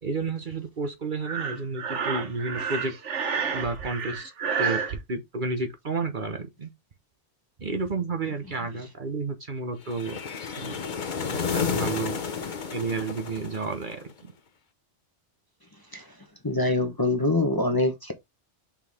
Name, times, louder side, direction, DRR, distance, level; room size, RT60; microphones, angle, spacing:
voice 1, 0.0-2.9 3.5-4.3 4.6-6.7 7.6-10.2 10.6-10.8 11.3-12.2 12.7-14.1, right 3 dB, 45° right, 1.2 m, -31 dB
Breathing, 1.2-5.0, right 6 dB, 75° right, 1.4 m, -30 dB
sound 1, 9.9-14.1, left 6 dB, 45° left, 0.9 m, -31 dB
voice 2, 16.4-18.1, left 2 dB, 20° left, 1.0 m, -24 dB
5.8 x 4.6 x 3.5 m
omnidirectional pair, 1.2 m